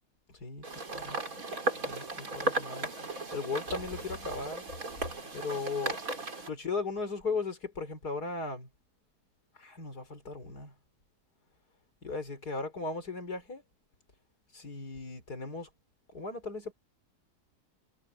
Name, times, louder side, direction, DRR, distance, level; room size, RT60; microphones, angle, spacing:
sound 1, 0.6-6.5, right 2 dB, 60° right, 4.1 m, -36 dB
voice 1, 1.8-4.7 5.3-6.0 6.5-8.7 9.6-10.7 12.0-13.6 14.5-15.7 16.1-16.7, left 3 dB, 75° left, 5.0 m, -37 dB
omnidirectional pair, 1.7 m